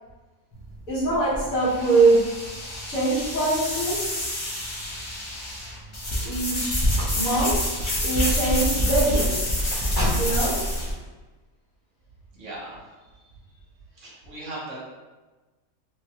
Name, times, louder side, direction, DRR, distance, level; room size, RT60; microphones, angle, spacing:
sound 1, 0.5-10.9, left 1 dB, 50° left, 0.3 m, -27 dB
voice 1, 0.9-2.2 2.9-4.4 6.2-7.6 8.0-9.4 10.1-10.6, right 2 dB, 75° left, -9 dB, 1.6 m, -23 dB
Car, 6.8-7.6 9.7-10.6, equal, 20° right, 0.9 m, -30 dB
voice 2, 12.3-12.9 13.9-14.8, right 1 dB, 65° right, -5 dB, 1.1 m, -38 dB
3.3 x 2.2 x 2.7 m, 1.2 s
omnidirectional pair, 1.5 m